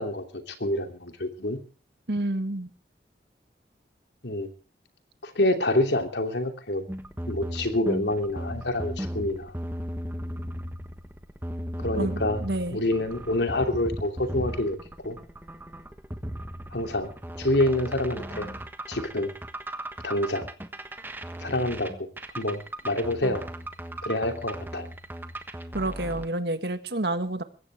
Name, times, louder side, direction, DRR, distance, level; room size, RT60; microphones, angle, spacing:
voice 1, 0.0-1.6 4.2-4.5 5.2-6.9 7.3-9.5 11.8-12.4 12.7-14.8 15.0-15.2 16.7-17.1 17.4-18.5 18.9-19.3 20.0-20.5 21.4-22.1 22.3-22.6 22.8-23.5 24.0-24.9, left 1 dB, 75° left, 6 dB, 2.9 m, -27 dB
voice 2, 2.1-2.7 12.0-12.8 25.7-27.4, right 1 dB, 70° right, 10 dB, 1.8 m, -29 dB
sound 1, 6.9-26.3, right 1 dB, 10° right, 1.3 m, -36 dB
22.0 x 16.0 x 3.5 m, 0.37 s
head